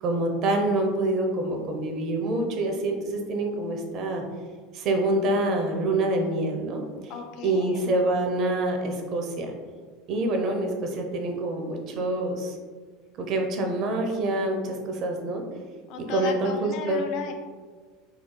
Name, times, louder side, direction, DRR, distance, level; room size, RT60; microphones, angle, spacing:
voice 1, 0.0-4.2 4.7-6.8 7.4-9.5 10.1-12.6 13.2-15.4 16.0-17.1, right 2 dB, 50° right, 3 dB, 0.7 m, -26 dB
voice 2, 7.1-8.0 15.9-17.3, left 6 dB, 60° left, 5 dB, 0.5 m, -35 dB
4.4 x 3.6 x 2.2 m, 1.5 s
hypercardioid pair, 95°, 0 cm